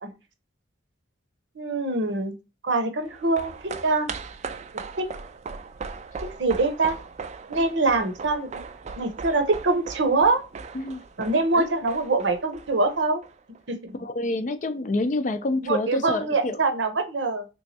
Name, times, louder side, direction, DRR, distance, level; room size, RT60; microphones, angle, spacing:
voice 1, 1.6-2.3 2.6-4.1 5.0-5.1 6.4-7.0 7.5-8.6 9.0-10.4 11.2-13.2 13.7-13.8 15.6-17.5, right 3 dB, 75° right, 0.8 m, -24 dB
sound 1, 3.0-13.6 13.9-14.0, right 5 dB, 35° right, 0.3 m, -39 dB
voice 2, 13.9-16.6, left 2 dB, 40° left, 0.4 m, -27 dB
3.4 x 3.1 x 2.7 m
head